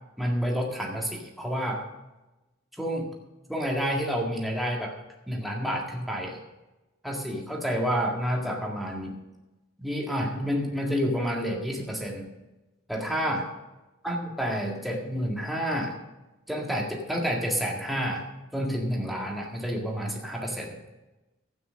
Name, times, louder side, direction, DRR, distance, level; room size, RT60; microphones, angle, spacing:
voice 1, 0.2-1.8 2.8-3.1 3.5-4.9 5.3-6.4 7.0-9.2 9.8-12.3 12.9-13.5 14.0-16.0 16.5-18.3 18.5-20.7, equal, ahead, -1 dB, 1.8 m, -29 dB
13.0 x 9.2 x 6.4 m, 1.1 s
head